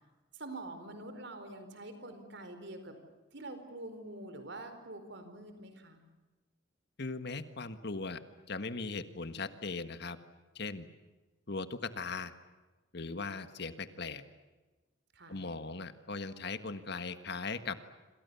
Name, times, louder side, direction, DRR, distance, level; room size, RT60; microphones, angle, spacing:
voice 1, 0.4-2.9 3.3-6.0 15.1-15.4, right 2 dB, 60° right, 8 dB, 4.7 m, -45 dB
voice 2, 7.0-8.2 8.5-10.2 10.5-10.9 11.5-12.3 12.9-14.2 15.3-17.8, left 3 dB, 60° left, 10 dB, 1.6 m, -39 dB
27.5 x 27.0 x 7.1 m, 1.2 s
head